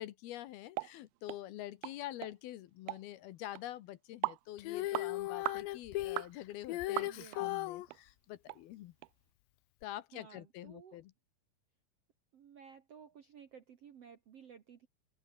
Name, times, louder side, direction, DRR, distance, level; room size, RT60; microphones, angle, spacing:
voice 1, 0.0-8.9 9.8-11.1, left 14 dB, 70° left, 2.7 m, -46 dB
sound 1, 0.8-0.9 1.3-1.4 1.8-2.0 2.2-2.3 2.9-3.0 3.6-3.7 4.2-4.4 4.9-5.1 5.5-5.6 6.2-6.3 7.0-7.4 7.9-8.0 8.5-8.6 9.0-9.1, right 23 dB, 85° right, 2.1 m, -37 dB
Female singing, 4.6-7.9 9.8-9.9, left 17 dB, 90° left, 3.3 m, -37 dB
voice 2, 7.0-7.5 10.1-11.0 12.3-14.9, right 7 dB, 60° right, 1.7 m, -55 dB
open air
omnidirectional pair, 4.9 m